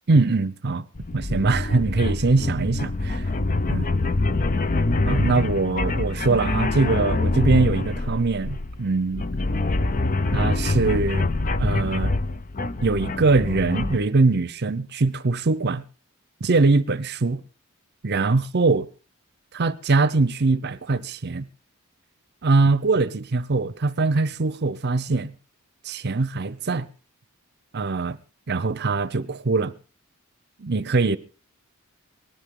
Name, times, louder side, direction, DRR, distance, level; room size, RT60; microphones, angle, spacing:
voice 1, 0.1-0.8 1.1-3.2 3.7-3.8 5.0-9.3 10.3-11.3 11.6-12.1 12.8-15.8 16.4-17.4 18.0-18.9 19.5-21.5 22.4-25.3 25.8-26.9 27.7-28.2 28.5-29.7 30.6-31.2, right 3 dB, 50° right, 0.7 m, -22 dB
sound 1, 1.0-14.0, left 2 dB, 40° left, 0.7 m, -25 dB
19.0 x 13.0 x 3.8 m
head